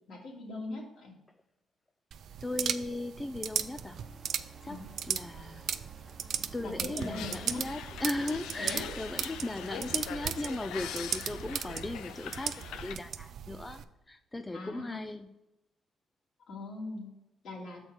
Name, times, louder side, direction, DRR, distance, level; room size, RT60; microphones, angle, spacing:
voice 1, 0.1-1.1 4.7-4.9 6.6-7.6 8.6-9.0 14.5-15.0 16.5-17.1 17.4-17.8, left 2 dB, 65° left, -1 dB, 2.1 m, -40 dB
sound 1, 2.1-13.8, right 8 dB, 65° right, 0.4 m, -37 dB
voice 2, 2.4-4.0 4.6-5.7 6.5-15.3, left 2 dB, 15° left, 8 dB, 0.3 m, -37 dB
sound 2, 2.8-13.8, right 5 dB, ahead, 1.1 m, -53 dB
sound 3, 7.0-13.0, left 9 dB, 90° left, 0.4 m, -43 dB
6.4 x 4.4 x 6.3 m, 0.95 s
cardioid pair, 90°, 0 cm